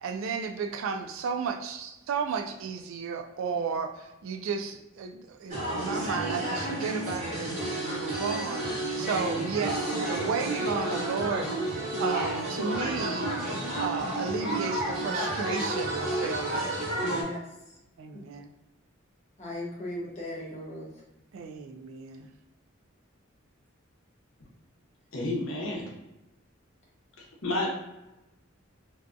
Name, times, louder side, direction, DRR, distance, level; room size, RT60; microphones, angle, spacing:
voice 1, 0.0-11.7 12.0-13.3 13.8-16.7 18.0-18.5 21.3-22.3, right 5 dB, 75° right, 5 dB, 0.3 m, -33 dB
sound 1, 5.5-17.2, right 1 dB, 35° right, 0.9 m, -31 dB
voice 2, 17.0-17.4 19.4-20.9, left 1 dB, 35° left, -4 dB, 0.8 m, -37 dB
voice 3, 25.1-25.9 27.2-27.7, left 2 dB, 70° left, -2 dB, 0.7 m, -31 dB
2.6 x 2.3 x 2.4 m, 0.97 s
head